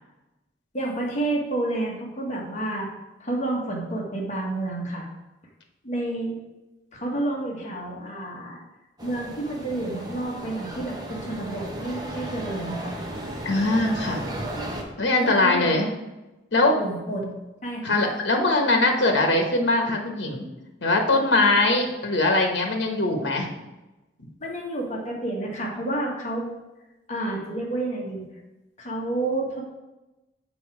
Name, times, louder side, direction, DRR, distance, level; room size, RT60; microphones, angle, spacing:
voice 1, 0.7-2.9 3.2-5.1 5.8-6.4 6.9-8.6 9.0-13.0 15.2-15.8 16.5-17.4 17.6-18.1 24.4-26.5 27.1-28.3 28.8-29.6, right 2 dB, 40° left, -1 dB, 1.4 m, -30 dB
sound 1, 9.0-14.8, right 1 dB, 20° right, 1.0 m, -35 dB
voice 2, 13.4-14.3 15.0-15.9 16.5-16.8 17.8-20.4 20.8-23.5, left 2 dB, 80° left, 3 dB, 1.1 m, -21 dB
6.8 x 4.9 x 4.8 m, 1.0 s
head